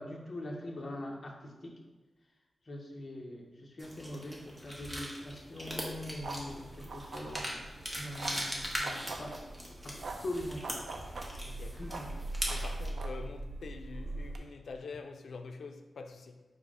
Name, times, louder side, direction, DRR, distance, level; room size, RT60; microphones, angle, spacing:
voice 1, 0.0-1.7 2.7-7.6 8.0-9.4 9.8-10.7 11.8-12.1, left 1 dB, 40° left, 0.7 m, -42 dB
sound 1, 3.8-12.9, equal, 10° right, 0.8 m, -41 dB
sound 2, 5.7-14.4, right 2 dB, 85° right, 0.5 m, -41 dB
voice 2, 11.4-11.8 12.5-16.4, left 4 dB, 85° left, 0.4 m, -45 dB
5.3 x 2.0 x 4.8 m
wide cardioid pair, 160°, 0 cm